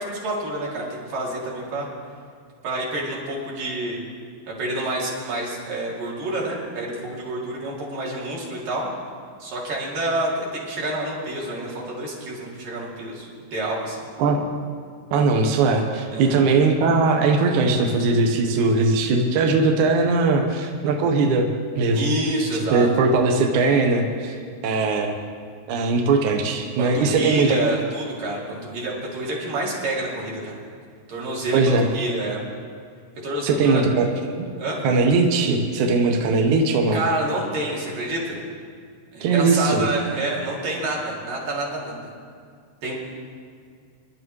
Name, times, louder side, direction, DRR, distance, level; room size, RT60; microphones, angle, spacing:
voice 1, 0.0-1.9 2.6-4.0 4.6-8.9 9.4-14.0 16.1-16.4 21.9-22.9 26.8-30.6 31.1-32.4 33.2-33.9 34.6-34.8 36.9-38.4 39.1-42.1 42.8-42.9, right 1 dB, 55° right, -4 dB, 4.0 m, -28 dB
voice 2, 15.1-22.1 22.7-24.4 24.6-25.2 25.7-27.6 31.5-31.9 33.4-34.1 34.4-34.5 34.8-37.0 39.2-39.8, right 3 dB, 80° right, 2 dB, 1.8 m, -20 dB
25.0 x 11.5 x 3.2 m, 2.2 s
omnidirectional pair, 5.0 m